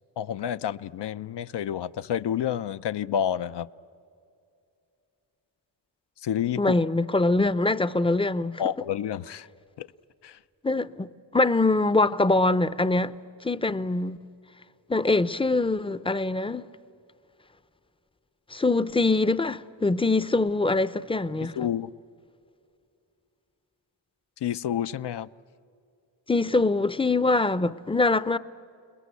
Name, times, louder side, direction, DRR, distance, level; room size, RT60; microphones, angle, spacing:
voice 1, 0.2-3.7 6.2-6.7 8.6-9.5 9.8-9.9 10.2-10.4 21.6-21.9 24.4-25.3, left 9 dB, 70° left, 0.6 m, -29 dB
voice 2, 6.6-8.6 10.6-13.1 13.4-14.2 14.9-16.7 18.5-21.5 26.3-28.4, left 2 dB, 10° left, 0.6 m, -23 dB
29.0 x 20.5 x 8.3 m
cardioid pair, 90°, 44 cm